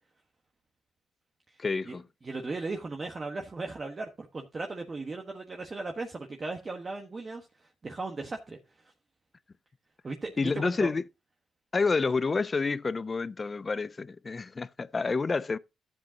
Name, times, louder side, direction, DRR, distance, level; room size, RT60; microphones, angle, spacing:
voice 1, 1.6-2.0 10.4-11.0 11.7-15.6, left 4 dB, 30° left, 0.5 m, -29 dB
voice 2, 2.2-8.6 10.0-10.9, right 3 dB, 30° right, 1.3 m, -37 dB
12.5 x 7.6 x 2.8 m
cardioid pair, 90°, 0 cm